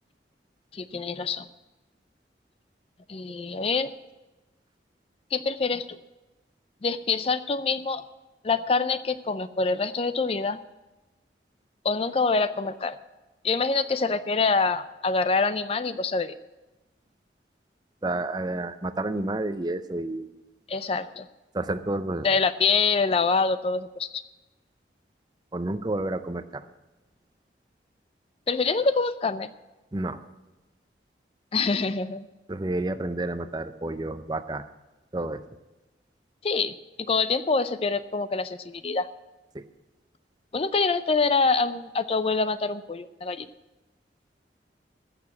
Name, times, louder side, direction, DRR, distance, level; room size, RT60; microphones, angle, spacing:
voice 1, 0.7-1.5 3.1-3.9 5.3-6.0 6.8-8.0 8.4-10.6 11.8-13.0 13.4-16.3 20.7-21.3 22.2-24.2 28.5-29.5 31.5-32.3 36.4-39.1 40.5-43.5, left 4 dB, 30° left, 14 dB, 0.4 m, -25 dB
voice 2, 18.0-20.3 21.5-22.3 25.5-26.6 29.9-30.2 32.5-34.7 35.1-35.4 39.5-39.6, right 2 dB, 25° right, 12 dB, 0.5 m, -30 dB
14.5 x 6.8 x 8.3 m, 1.1 s
head